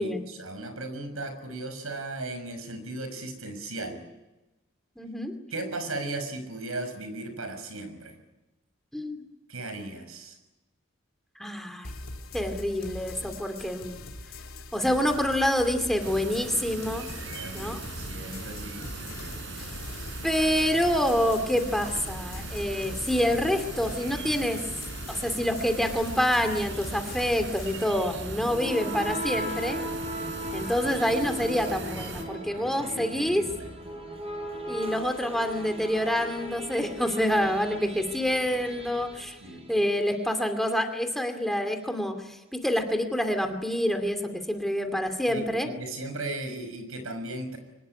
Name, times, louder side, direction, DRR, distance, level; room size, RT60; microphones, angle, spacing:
voice 1, 0.0-4.0 5.5-8.2 9.5-10.4 17.3-18.9 32.1-33.7 39.4-39.7 45.3-47.6, right 2 dB, 85° right, 8 dB, 6.0 m, -37 dB
voice 2, 5.0-5.3 8.9-9.2 11.4-11.9 12.3-14.0 14.7-17.1 17.5-17.8 20.2-24.6 25.1-29.8 30.5-33.4 34.7-39.4 39.7-45.7, equal, ahead, 6 dB, 2.5 m, -27 dB
sound 1, 11.8-27.8, left 2 dB, 75° left, 3.1 m, -42 dB
sound 2, 16.0-32.2, right 3 dB, 60° right, 4.9 m, -39 dB
sound 3, 28.2-40.1, equal, 30° right, 5.8 m, -37 dB
24.5 x 20.5 x 9.8 m, 1.0 s
head